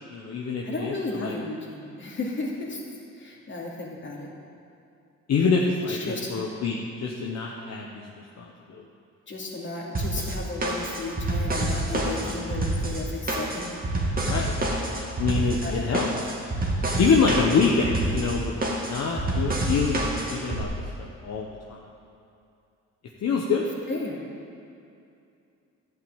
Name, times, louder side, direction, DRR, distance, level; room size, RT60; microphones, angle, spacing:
voice 1, 0.1-1.4 5.3-8.1 8.4-8.8 12.1-12.5 14.2-14.5 14.8-16.1 17.0-21.8 23.2-23.7, left 4 dB, 60° left, -1 dB, 1.2 m, -26 dB
voice 2, 0.6-2.8 3.2-4.3 5.9-6.3 9.3-13.7 15.6-15.7 23.9-24.3, left 2 dB, 40° left, -3 dB, 2.7 m, -34 dB
sound 1, 9.9-20.6, right 1 dB, 30° right, 2.0 m, -28 dB
11.5 x 5.9 x 8.9 m, 2.6 s
cardioid pair, 90°, 30 cm